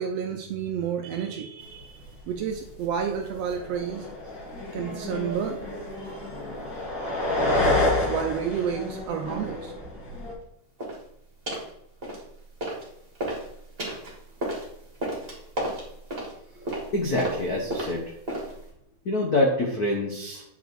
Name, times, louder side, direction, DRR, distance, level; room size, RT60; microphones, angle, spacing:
voice 1, 0.0-4.1 4.7-5.6 8.0-9.7, right 7 dB, 75° right, 4 dB, 1.5 m, -30 dB
sound 1, 2.0-2.1 2.4-3.0 3.4-10.3, left 1 dB, 40° left, 2.2 m, -29 dB
sound 2, 10.8-11.0 11.5-11.7 12.0-12.9 13.1-18.7, right 1 dB, 20° right, 2.6 m, -33 dB
voice 2, 16.9-18.1 19.0-20.4, left 1 dB, 75° left, 0 dB, 0.8 m, -26 dB
9.0 x 5.0 x 4.7 m, 0.79 s
omnidirectional pair, 3.4 m